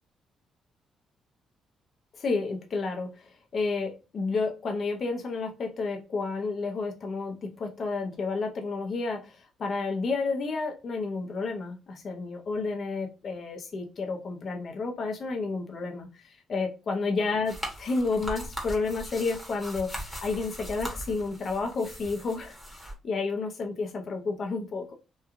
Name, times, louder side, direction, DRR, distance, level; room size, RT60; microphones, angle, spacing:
voice 1, 2.2-24.9, left 4 dB, 50° left, 0.6 m, -31 dB
sound 1, 17.5-22.9, equal, 10° left, 1.0 m, -39 dB
3.0 x 2.2 x 2.4 m
cardioid pair, 90°, 0 cm